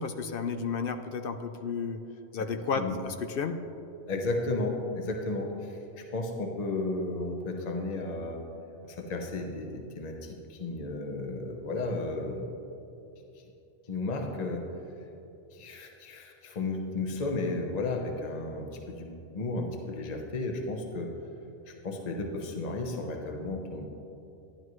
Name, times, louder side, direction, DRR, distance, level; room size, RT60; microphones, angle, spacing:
voice 1, 0.0-2.0 2.3-3.6, left 5 dB, 60° left, 8 dB, 0.6 m, -32 dB
voice 2, 4.1-8.4 8.8-12.5 13.9-14.6 15.5-21.1 21.7-23.9, left 2 dB, 35° left, 2 dB, 0.9 m, -33 dB
12.0 x 11.0 x 3.1 m, 2.8 s
omnidirectional pair, 1.3 m